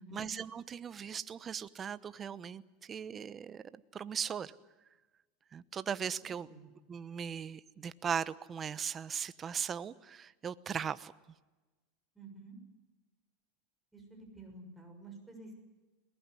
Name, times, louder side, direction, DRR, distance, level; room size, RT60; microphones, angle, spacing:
voice 1, 0.0-4.6 5.5-6.5 6.9-11.1, right 7 dB, 25° right, 16 dB, 0.9 m, -38 dB
voice 2, 12.1-12.6 13.9-15.5, right 2 dB, 5° right, 2 dB, 6.8 m, -50 dB
22.0 x 19.0 x 9.8 m, 1.2 s
supercardioid pair, 130°, 0 cm